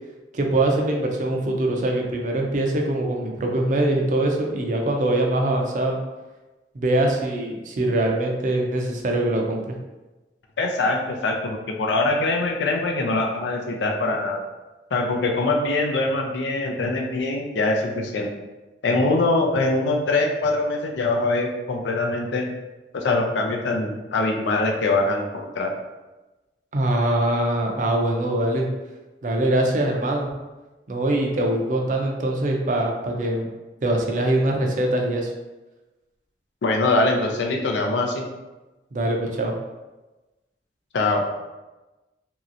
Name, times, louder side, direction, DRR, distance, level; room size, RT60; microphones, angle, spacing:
voice 1, 0.3-6.0 6.7-9.8 26.7-28.7 29.2-30.3 30.9-33.5 33.8-35.3 38.9-39.5, right 1 dB, 45° right, 1 dB, 0.4 m, -23 dB
voice 2, 10.6-14.4 14.9-18.3 18.8-22.5 22.9-25.7 36.6-38.2 40.9-41.2, left 2 dB, 90° left, 1 dB, 0.5 m, -23 dB
3.0 x 2.8 x 2.5 m, 1.1 s
head